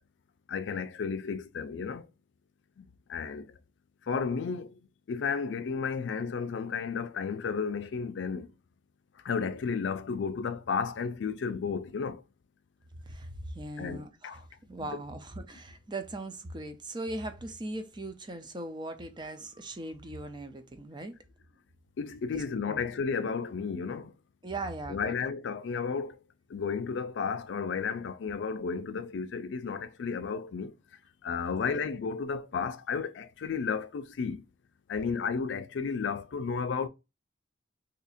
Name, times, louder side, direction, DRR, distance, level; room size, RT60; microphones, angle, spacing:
voice 1, 0.5-2.1 2.8-3.5 4.0-4.8 5.1-8.5 9.2-12.2 13.8-14.4 22.0-24.1 24.9-26.2 26.5-30.8 31.2-34.4 34.9-36.9, left 5 dB, 90° left, 0.4 m, -33 dB
voice 2, 13.0-21.2 22.3-22.4 22.7-22.8 24.4-25.2 31.5-31.8, right 2 dB, 25° right, 0.5 m, -39 dB
2.8 x 2.5 x 4.0 m
head